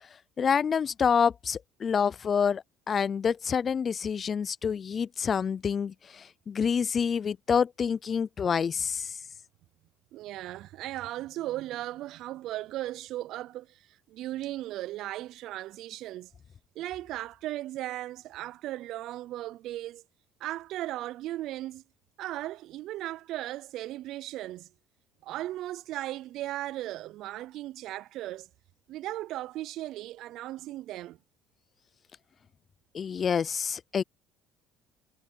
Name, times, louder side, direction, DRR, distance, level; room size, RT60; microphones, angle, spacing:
voice 1, 0.4-9.2 32.9-34.0, left 6 dB, 35° left, 0.3 m, -27 dB
voice 2, 10.1-16.3 16.8-20.0 20.4-21.8 22.2-24.7 25.2-28.5 28.9-31.2, right 15 dB, 65° right, 0.4 m, -37 dB
cardioid pair, 120°, 0 cm